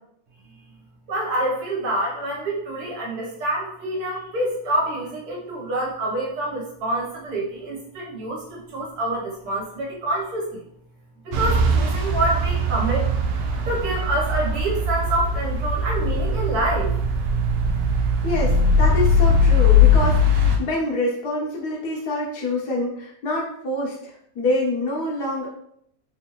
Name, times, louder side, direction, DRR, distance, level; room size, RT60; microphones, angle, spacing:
voice 1, 1.1-10.6 11.2-13.1 13.7-16.9, right 1 dB, 65° right, -4 dB, 1.4 m, -26 dB
sound 1, 11.3-20.6, left 2 dB, 80° right, 1.2 m, -20 dB
voice 2, 18.2-24.0 24.3-25.5, left 2 dB, 65° left, -3 dB, 1.3 m, -26 dB
3.4 x 2.7 x 2.9 m, 0.71 s
omnidirectional pair, 1.9 m